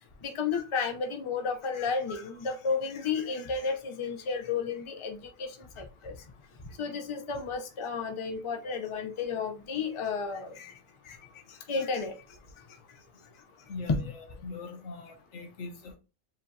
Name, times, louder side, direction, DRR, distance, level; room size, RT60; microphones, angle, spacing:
voice 1, 0.2-6.2 6.8-10.7 11.1-11.2 11.7-12.1 13.9-14.0, left 5 dB, 35° left, 0.5 m, -32 dB
voice 2, 13.7-15.9, left 3 dB, 65° left, 1.2 m, -42 dB
7.4 x 2.7 x 2.3 m
omnidirectional pair, 1.4 m